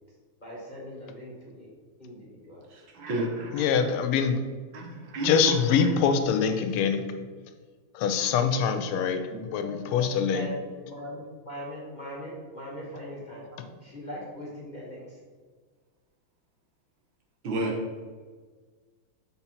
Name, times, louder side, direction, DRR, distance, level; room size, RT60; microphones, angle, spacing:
voice 1, 0.4-1.7 2.0-2.6 9.6-10.5 10.9-13.4 13.8-15.1, equal, 30° left, -5 dB, 0.8 m, -40 dB
voice 2, 2.7-3.6 4.7-5.3 9.3-9.4 17.4-17.8, right 2 dB, 65° right, 0 dB, 1.7 m, -31 dB
voice 3, 3.5-4.5 5.2-7.3 7.9-10.5, left 6 dB, 85° left, 7 dB, 1.5 m, -24 dB
4.5 x 4.1 x 5.6 m, 1.5 s
omnidirectional pair, 2.4 m